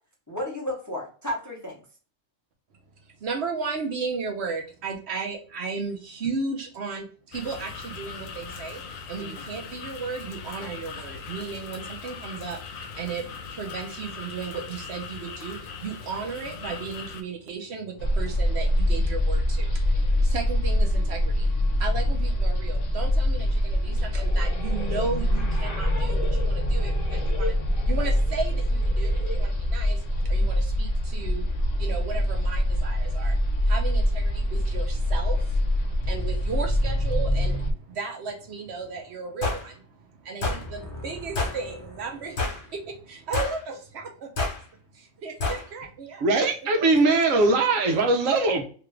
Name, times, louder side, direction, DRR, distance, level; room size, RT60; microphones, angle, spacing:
voice 1, 0.3-1.8 9.2-9.4 40.5-41.6, left 1 dB, 20° left, -2 dB, 0.6 m, -34 dB
voice 2, 3.0-44.5 44.9-46.2 46.6-46.7, right 4 dB, 60° right, 3 dB, 1.0 m, -35 dB
sound 1, 7.3-17.2, left 5 dB, 90° left, 1.0 m, -39 dB
sound 2, 18.0-37.7, equal, 70° left, 0.4 m, -24 dB
sound 3, 39.4-39.6 40.4-40.6 41.3-41.6 42.4-42.6 43.3-43.6 44.4-44.6 45.4-45.6, left 3 dB, 55° left, 1.2 m, -27 dB
voice 3, 46.2-48.6, right 3 dB, 90° right, 4 dB, 1.1 m, -21 dB
2.9 x 2.4 x 3.1 m, 0.40 s
omnidirectional pair, 1.3 m